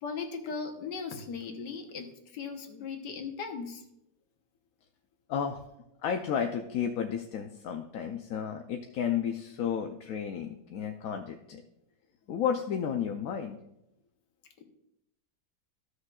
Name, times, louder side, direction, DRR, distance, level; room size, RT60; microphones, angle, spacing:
voice 1, 0.0-2.1 2.3-3.8, left 5 dB, 85° left, 4 dB, 1.6 m, -37 dB
voice 2, 5.3-5.6 6.0-11.6 12.3-13.6, left 8 dB, 65° left, 4 dB, 1.0 m, -32 dB
15.0 x 6.5 x 2.4 m, 0.83 s
omnidirectional pair, 1.8 m